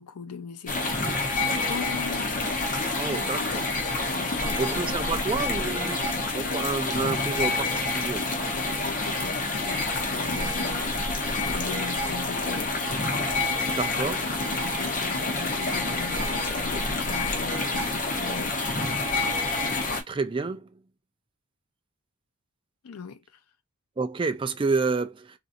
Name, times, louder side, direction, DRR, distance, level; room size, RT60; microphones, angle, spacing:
voice 1, 0.0-1.4 1.7-2.6 3.0-3.7 4.1-5.1 8.5-11.0 11.5-12.8 14.0-18.6 22.8-23.2, left 6 dB, 85° left, 0.5 m, -40 dB
sound 1, 0.7-20.0, left 2 dB, 35° left, 0.8 m, -28 dB
voice 2, 3.0-3.6 4.6-6.0 6.3-8.3 13.7-14.3 20.1-20.7 24.0-25.4, right 4 dB, 25° right, 0.3 m, -29 dB
3.9 x 2.5 x 2.5 m
head